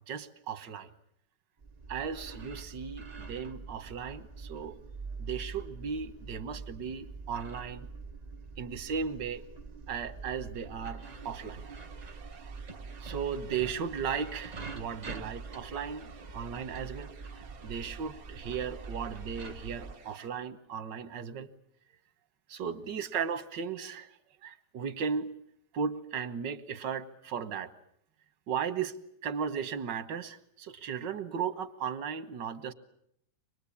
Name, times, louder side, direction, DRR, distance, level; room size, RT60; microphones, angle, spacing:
voice 1, 0.1-0.9 1.9-4.8 5.2-7.9 8.6-9.4 9.9-11.7 13.0-16.1 16.3-17.1 17.6-21.5 22.5-24.2 24.4-25.3 25.7-27.7 28.5-29.0 29.2-32.7, right 6 dB, 85° right, 12 dB, 1.8 m, -36 dB
sound 1, 1.6-19.9, right 4 dB, 30° right, 0.9 m, -44 dB
sound 2, 11.0-20.3, right 5 dB, 55° right, 1.8 m, -54 dB
25.0 x 20.5 x 8.5 m, 0.71 s
omnidirectional pair, 1.9 m